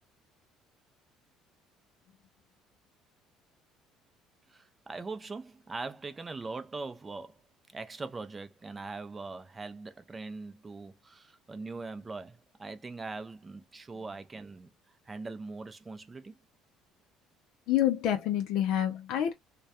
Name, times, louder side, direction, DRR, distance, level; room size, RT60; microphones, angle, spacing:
voice 1, 4.5-7.4 7.7-14.7 15.1-16.4, right 3 dB, 25° right, 0.5 m, -41 dB
voice 2, 17.7-19.3, left 11 dB, 70° left, 0.4 m, -27 dB
2.3 x 2.1 x 2.7 m
supercardioid pair, 85°, 0 cm